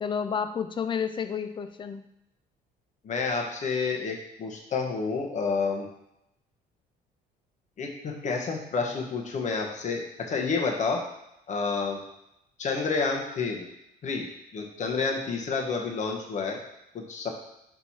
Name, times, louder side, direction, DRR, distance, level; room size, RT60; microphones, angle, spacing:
voice 1, 0.0-2.0, left 7 dB, 30° left, 10 dB, 0.5 m, -30 dB
voice 2, 3.0-5.9 7.8-11.0 11.5-12.0 12.6-13.6 14.0-16.6 16.9-17.3, left 4 dB, 45° left, 1 dB, 1.2 m, -29 dB
5.3 x 4.6 x 4.3 m, 0.83 s
cardioid pair, 110°, 17 cm